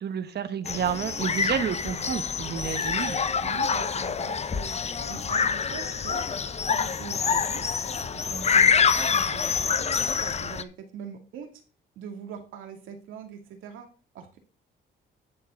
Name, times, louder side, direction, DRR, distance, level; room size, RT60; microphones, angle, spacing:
voice 1, 0.0-3.2, right 8 dB, 55° right, 11 dB, 1.1 m, -30 dB
sound 1, 0.7-10.6, left 6 dB, 35° left, 0.7 m, -26 dB
voice 2, 3.4-4.8 5.1-6.2 6.7-7.6 8.1-11.5 12.0-13.9 14.1-14.4, right 7 dB, 85° right, 4 dB, 2.1 m, -42 dB
11.0 x 4.5 x 5.9 m, 0.36 s
cardioid pair, 90°, 20 cm